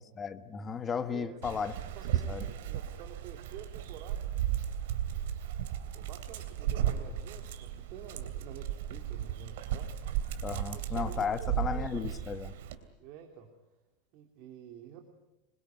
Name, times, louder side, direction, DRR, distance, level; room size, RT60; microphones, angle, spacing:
voice 1, 0.2-1.7 2.3-2.4 10.4-12.5, left 6 dB, 20° left, 1.2 m, -34 dB
voice 2, 1.1-1.7 1.9-4.3 5.9-9.9 10.7-12.2 13.0-13.5 14.1-15.0, right 9 dB, 45° right, 2.8 m, -49 dB
Dog, 1.4-12.8, right 10 dB, 70° right, 3.0 m, -35 dB
26.5 x 22.0 x 9.2 m
supercardioid pair, 165°, 0 cm